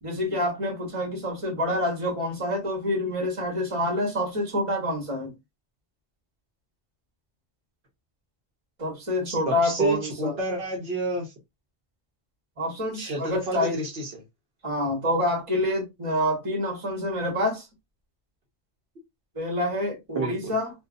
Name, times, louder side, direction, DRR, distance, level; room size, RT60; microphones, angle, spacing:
voice 1, 0.0-5.3 8.8-10.3 12.6-13.8 14.6-17.7 19.3-20.7, left 1 dB, 30° right, 1.2 m, -27 dB
voice 2, 9.2-11.3 12.9-14.1 20.1-20.5, right 2 dB, 70° right, 1.0 m, -29 dB
2.5 x 2.5 x 2.4 m
omnidirectional pair, 1.1 m